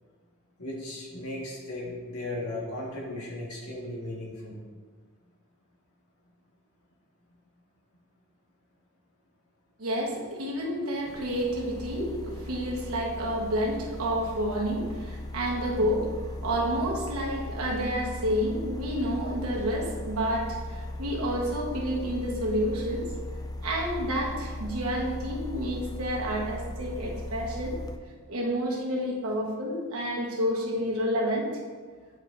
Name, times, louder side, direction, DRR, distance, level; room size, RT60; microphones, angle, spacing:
voice 1, 0.6-4.6, left 1 dB, 80° left, -4 dB, 1.7 m, -36 dB
voice 2, 9.8-23.1 23.6-27.8 28.3-31.5, equal, 65° right, -2 dB, 1.3 m, -29 dB
sound 1, 11.1-28.0, left 1 dB, 15° left, 0.3 m, -38 dB
9.5 x 4.6 x 2.6 m, 1.5 s
head